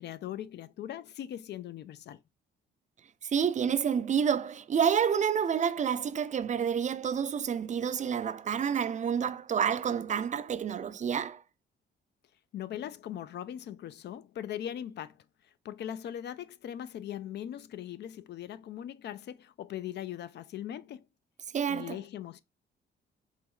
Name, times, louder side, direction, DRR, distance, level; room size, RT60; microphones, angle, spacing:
voice 1, 0.0-2.2 12.5-21.1 21.7-22.4, left 11 dB, 60° left, 0.4 m, -40 dB
voice 2, 3.2-11.4 21.5-22.0, right 7 dB, 40° right, 0.4 m, -29 dB
4.5 x 3.0 x 3.7 m
cardioid pair, 90°, 20 cm